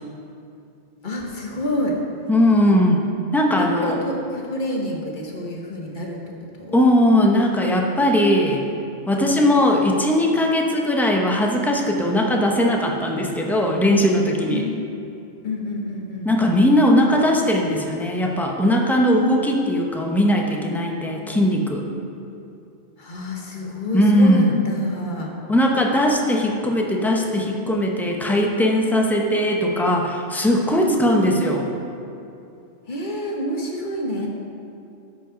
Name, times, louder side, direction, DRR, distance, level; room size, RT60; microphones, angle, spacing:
voice 1, 1.0-2.0 3.6-6.2 6.6-6.8 9.2-9.4 14.5-14.7 15.4-16.3 23.0-25.3 30.8-31.5 32.9-34.3, left 1 dB, 40° left, 0 dB, 1.4 m, -28 dB
voice 2, 2.3-3.0 3.3-4.0 6.7-8.6 9.1-14.6 16.2-21.9 23.9-24.5 25.5-31.6, left 1 dB, ahead, 0 dB, 0.7 m, -19 dB
13.0 x 5.4 x 5.1 m, 2.6 s
omnidirectional pair, 1.3 m